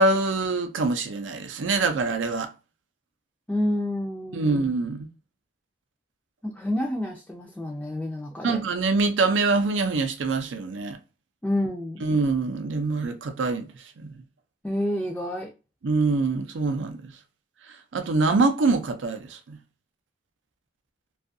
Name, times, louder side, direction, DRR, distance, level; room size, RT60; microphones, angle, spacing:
voice 1, 0.0-2.5 4.3-5.1 8.4-11.0 12.0-13.7 14.0-14.2 15.8-17.1 17.9-19.6, right 3 dB, 85° right, 0.5 m, -24 dB
voice 2, 3.5-4.7 6.4-8.6 11.4-12.0 14.6-15.5, left 1 dB, 10° left, 0.4 m, -29 dB
2.6 x 2.4 x 2.4 m
head